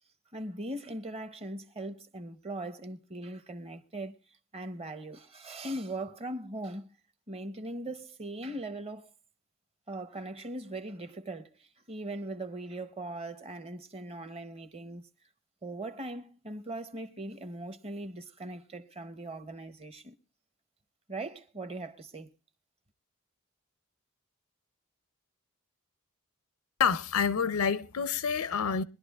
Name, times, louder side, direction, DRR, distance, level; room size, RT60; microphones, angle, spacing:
voice 1, 0.3-4.2 4.5-6.9 7.3-9.1 9.9-15.0 15.6-20.2 21.1-22.3, right 1 dB, 30° right, 0.8 m, -40 dB
voice 2, 26.8-28.8, left 6 dB, 90° left, 0.6 m, -28 dB
22.5 x 11.5 x 2.4 m
head